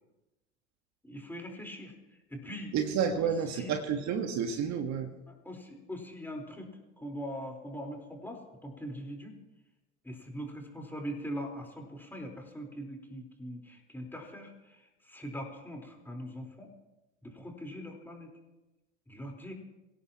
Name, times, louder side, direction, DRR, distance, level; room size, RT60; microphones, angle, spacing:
voice 1, 1.0-1.9 2.3-3.7 5.3-6.7 7.0-9.3 10.0-16.7 17.2-18.3 19.1-19.5, equal, 5° left, 1 dB, 4.1 m, -42 dB
voice 2, 2.7-5.1, right 7 dB, 45° right, 5 dB, 1.6 m, -30 dB
26.0 x 17.0 x 3.0 m, 1.0 s
hypercardioid pair, 80°, 39 cm